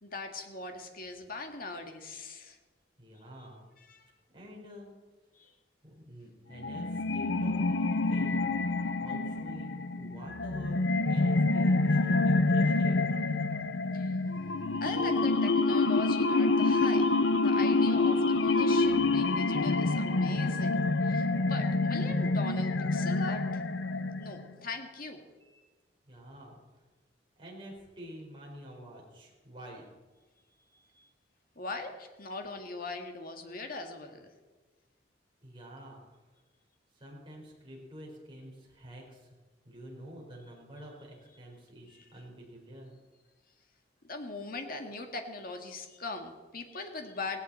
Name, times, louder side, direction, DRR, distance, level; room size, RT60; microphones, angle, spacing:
voice 1, 0.0-2.6 3.9-4.1 5.3-5.5 13.9-14.2 14.8-23.6 24.2-25.2 30.7-31.1 31.6-34.3 41.9-42.0 44.0-47.4, left 3 dB, 50° left, 5 dB, 1.9 m, -41 dB
voice 2, 3.0-3.7 4.3-4.9 5.4-5.5 5.8-7.6 8.1-8.5 9.0-10.8 11.1-13.0 25.4-25.6 26.1-26.8 27.4-29.8 35.4-36.2 36.9-39.4 39.6-43.0, equal, 25° right, -2 dB, 5.1 m, -48 dB
sound 1, 6.6-24.5, left 3 dB, 70° left, 0.7 m, -27 dB
18.0 x 17.5 x 4.4 m, 1.2 s
head